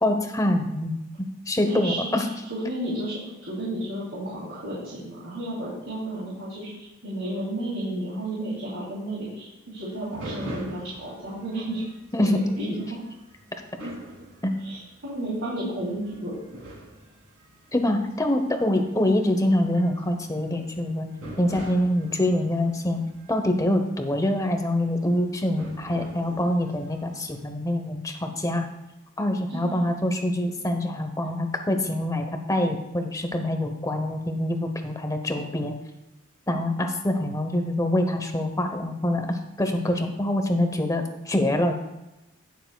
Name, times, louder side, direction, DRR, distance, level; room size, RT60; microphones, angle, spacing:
voice 1, 0.0-2.3 12.1-12.4 14.4-14.5 17.7-21.1 21.4-23.0 23.3-28.7 29.2-35.7 36.5-41.8, left 1 dB, 15° left, 6 dB, 0.9 m, -25 dB
voice 2, 1.6-2.0 2.5-11.8 12.2-13.0 14.6-16.3 29.5-29.8, right 1 dB, 65° right, -8 dB, 3.0 m, -32 dB
sound 1, 9.8-27.5, right 1 dB, 80° right, 2.8 m, -45 dB
17.5 x 6.8 x 2.3 m, 0.95 s
head